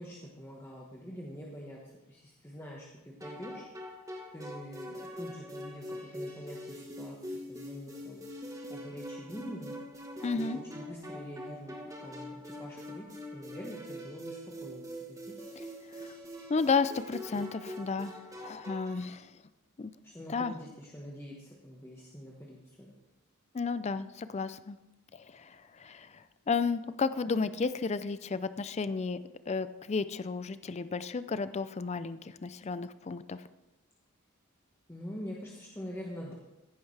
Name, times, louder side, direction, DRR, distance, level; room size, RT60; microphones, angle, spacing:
voice 1, 0.0-1.8 2.1-3.7 4.3-8.2 8.7-9.7 10.3-11.7 12.0-15.6 20.0-22.9 34.9-36.3, equal, 10° left, -3 dB, 1.3 m, -45 dB
sound 1, 3.2-19.1, equal, 15° right, 1.3 m, -43 dB
voice 2, 10.2-10.6 16.0-16.1 16.5-19.3 19.8-19.9 20.3-20.5 23.5-24.8 25.1-29.2 29.5-33.5, left 4 dB, 30° left, 14 dB, 0.4 m, -33 dB
15.0 x 10.5 x 3.3 m, 0.99 s
head